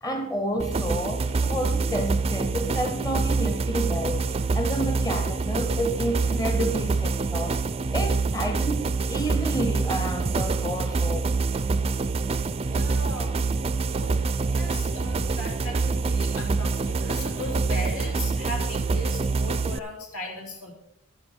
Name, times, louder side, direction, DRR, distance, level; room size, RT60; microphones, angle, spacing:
voice 1, 0.0-4.3 4.5-7.6 7.9-11.3, right 1 dB, 15° left, 0.8 m, -30 dB
sound 1, 0.6-19.8, right 4 dB, 25° right, 0.4 m, -26 dB
voice 2, 12.7-13.4 13.9-14.1 14.4-20.7, left 1 dB, 75° left, 3.5 m, -37 dB
12.0 x 9.6 x 4.5 m
head